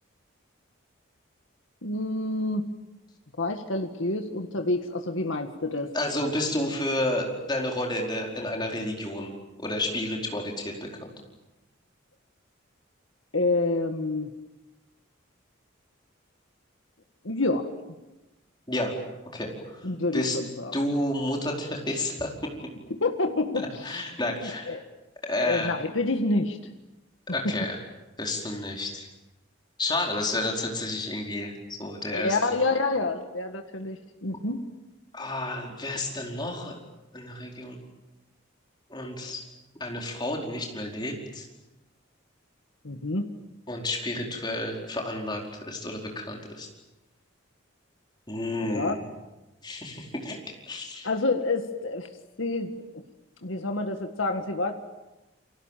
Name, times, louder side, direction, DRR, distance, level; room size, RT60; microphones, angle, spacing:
voice 1, 1.8-2.7 3.4-5.9 13.3-14.3 17.2-17.7 19.8-20.8 22.9-24.0 24.4-24.8 25.4-26.6 27.4-27.5 32.1-34.6 39.2-39.3 42.8-43.3 48.6-48.9 51.0-52.1 52.4-52.7 53.4-54.8, left 2 dB, 70° left, 6 dB, 1.7 m, -28 dB
voice 2, 5.9-9.3 9.6-11.1 18.7-19.0 19.3-20.4 20.7-22.5 23.6-24.8 25.2-25.7 27.3-27.8 28.2-29.1 29.8-32.4 35.1-36.7 37.1-37.8 38.9-39.4 39.8-41.5 43.7-46.7 48.3-49.0 49.6-50.4 50.7-51.1, left 1 dB, 20° left, 0 dB, 4.7 m, -31 dB
29.0 x 24.0 x 7.5 m, 1.0 s
head